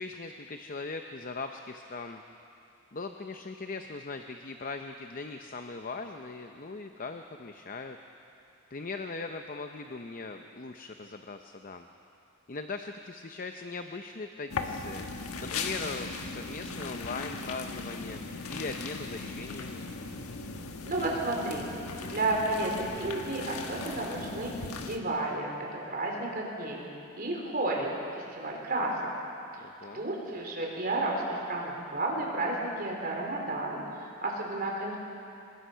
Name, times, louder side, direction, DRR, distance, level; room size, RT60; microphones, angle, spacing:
voice 1, 0.0-2.2 2.9-8.0 8.7-11.9 12.5-15.0 15.4-18.2 18.5-19.8 29.6-30.0, left 3 dB, 40° left, 6 dB, 0.7 m, -39 dB
sound 1, 14.5-25.0, left 4 dB, 85° left, 1.4 m, -38 dB
voice 2, 20.9-21.7 22.1-24.5 24.8-25.5 25.9-26.8 27.2-28.9 29.9-35.0, right 2 dB, 45° right, -1 dB, 3.9 m, -32 dB
24.0 x 21.0 x 5.7 m, 2.7 s
head